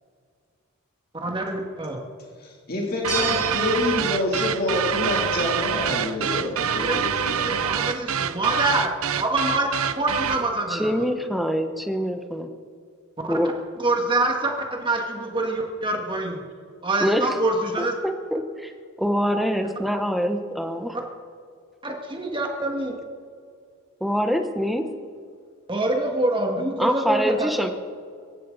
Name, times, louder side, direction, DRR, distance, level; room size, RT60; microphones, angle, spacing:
voice 1, 1.1-2.0 6.8-7.0 7.4-8.9 9.2-9.7 10.0-10.9 13.2-13.4 13.8-16.4 16.8-17.9 21.8-23.0 25.7-27.5, right 2 dB, 25° right, 1 dB, 2.1 m, -25 dB
voice 2, 2.4-7.5, left 2 dB, 45° left, -2 dB, 3.1 m, -27 dB
sound 1, 3.0-10.5, right 8 dB, 85° right, 0.7 m, -26 dB
sound 2, 3.1-4.0, right 3 dB, 15° left, 3.9 m, -31 dB
voice 3, 10.7-12.5 13.3-13.5 17.0-17.3 17.8-18.7 19.0-21.0 24.0-24.8 26.8-27.7, equal, ahead, 6 dB, 1.0 m, -25 dB
24.5 x 14.0 x 4.1 m, 2.2 s
head